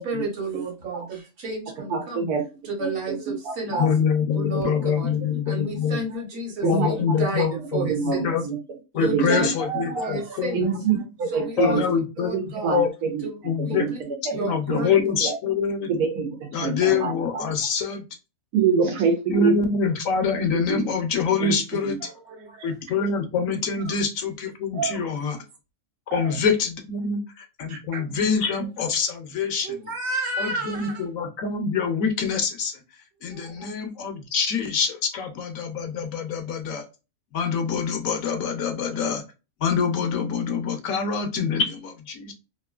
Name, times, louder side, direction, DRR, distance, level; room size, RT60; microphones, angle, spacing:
voice 1, 0.0-2.3 2.6-3.9 4.3-5.1 5.5-8.3 8.9-9.5 10.0-10.7 11.3-11.8 12.2-12.8 13.2-14.0 14.3-14.9 22.5-22.7, right 3 dB, 65° right, 1.4 m, -32 dB
voice 2, 1.9-2.4 2.8-3.9 4.5-4.6 6.6-8.6 9.0-9.5 10.5-11.9 12.3-13.2 13.6-14.4 14.7-14.8 15.2-15.3 15.9-17.4 18.5-19.6 20.5-20.9 21.4-22.0, right 5 dB, 85° right, 1.2 m, -26 dB
voice 3, 3.8-6.0 6.6-8.5 8.9-11.0 11.6-12.4 12.7-12.9 13.4-13.9 14.3-15.9 16.5-18.0 19.3-22.0 22.6-25.4 26.1-27.2 27.6-29.7 30.4-32.7 33.2-36.8 37.3-39.2 39.6-42.3, left 6 dB, 70° left, 0.9 m, -25 dB
voice 4, 9.6-10.7 11.3-11.4 21.3-21.5 22.0-22.5 23.8-24.0 24.7-25.3 26.1-26.4 27.7-28.1 29.6-31.1 33.3-33.7, right 3 dB, 50° right, 0.9 m, -33 dB
3.0 x 2.6 x 2.2 m
omnidirectional pair, 1.6 m